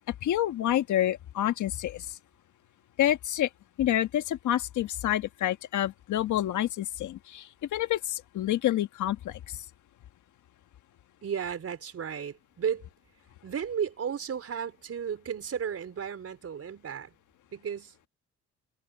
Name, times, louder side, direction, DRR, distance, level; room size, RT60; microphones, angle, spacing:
voice 1, 0.1-2.2 3.0-3.5 3.8-9.6, left 12 dB, 75° left, 1.6 m, -28 dB
voice 2, 11.2-12.9 13.4-17.1 17.5-17.9, right 7 dB, 50° right, 4.7 m, -34 dB
cardioid pair, 90°, 30 cm